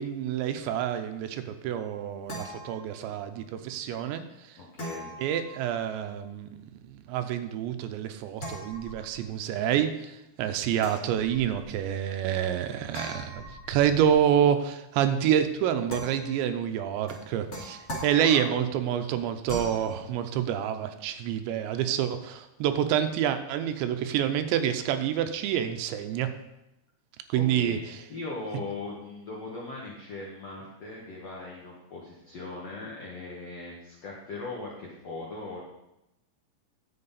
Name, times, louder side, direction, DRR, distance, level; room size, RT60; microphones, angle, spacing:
voice 1, 0.0-4.2 5.2-6.5 6.9-26.3 27.3-27.8, right 9 dB, 90° right, 9 dB, 3.0 m, -27 dB
sound 1, 1.7-3.3 4.8-6.2 8.4-9.4 10.8-11.8 12.9-14.3 15.9-16.5 17.1-18.6 19.4-19.9, equal, 30° left, 2.1 m, -41 dB
voice 2, 4.6-5.1 18.2-18.5 27.3-27.8 28.1-35.6, left 3 dB, 70° left, -4 dB, 1.5 m, -39 dB
11.0 x 7.8 x 4.1 m, 0.91 s
omnidirectional pair, 5.1 m